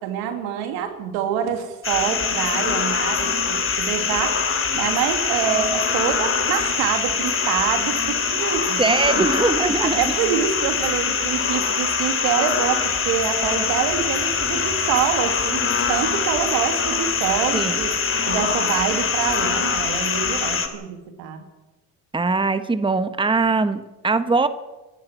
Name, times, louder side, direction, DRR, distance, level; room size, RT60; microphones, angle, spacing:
voice 1, 0.0-18.0 18.3-21.4, right 8 dB, 85° right, 6 dB, 2.9 m, -26 dB
sound 1, 1.8-20.7, left 5 dB, 35° left, 3.1 m, -23 dB
voice 2, 8.8-10.2 17.5-17.8 22.1-24.5, right 3 dB, 15° right, 11 dB, 1.3 m, -21 dB
25.5 x 11.5 x 9.2 m, 1.1 s
supercardioid pair, 85°, 37 cm